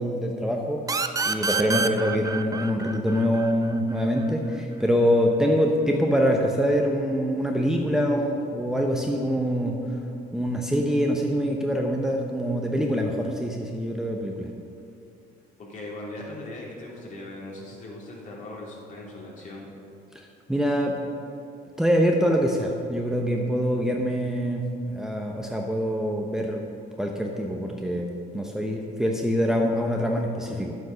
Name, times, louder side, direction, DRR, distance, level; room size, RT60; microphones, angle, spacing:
voice 1, 0.0-9.8 10.3-14.5 20.1-21.0 21.8-26.7 27.0-30.8, equal, 5° right, 0 dB, 0.9 m, -25 dB
sound 1, 0.9-4.3, right 4 dB, 20° right, 0.5 m, -28 dB
voice 2, 15.6-19.7, left 1 dB, 50° left, -3 dB, 2.9 m, -39 dB
10.5 x 8.0 x 5.8 m, 2.5 s
cardioid pair, 110°, 17 cm